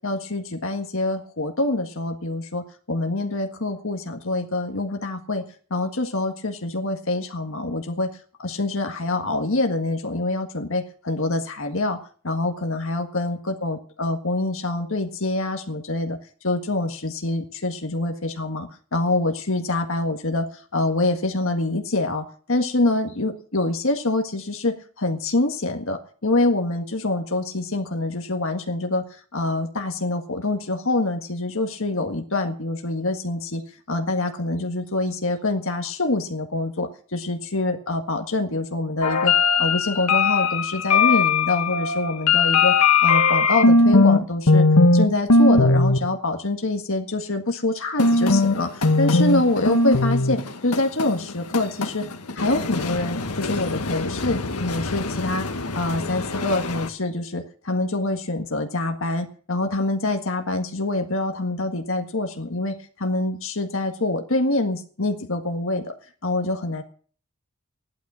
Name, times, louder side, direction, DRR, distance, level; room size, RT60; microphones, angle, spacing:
voice 1, 0.0-5.4 5.7-8.1 8.4-12.0 12.2-16.2 16.4-29.0 29.3-33.6 33.9-42.7 43.0-44.7 44.9-52.1 52.4-55.5 55.8-65.9 66.2-66.8, left 2 dB, 65° left, 5 dB, 1.7 m, -25 dB
sound 1, 39.0-44.2 44.5-45.1 45.3-46.0 48.0-56.9, left 3 dB, 90° left, 1.7 m, -20 dB
15.5 x 11.5 x 6.3 m, 0.43 s
head